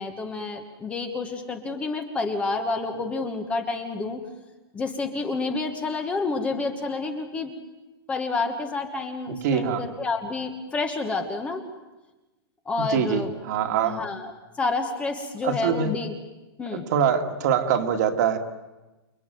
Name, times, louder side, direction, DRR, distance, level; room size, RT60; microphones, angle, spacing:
voice 1, 0.0-4.2 4.7-7.5 8.1-11.6 12.6-13.3 13.8-14.3 14.6-16.1 16.6-16.9, left 3 dB, 10° left, 5 dB, 1.3 m, -29 dB
voice 2, 9.3-9.8 12.8-14.0 15.4-15.9 16.7-18.4, right 7 dB, 45° right, 6 dB, 2.2 m, -24 dB
29.0 x 21.5 x 9.3 m, 1.1 s
supercardioid pair, 175°, 13 cm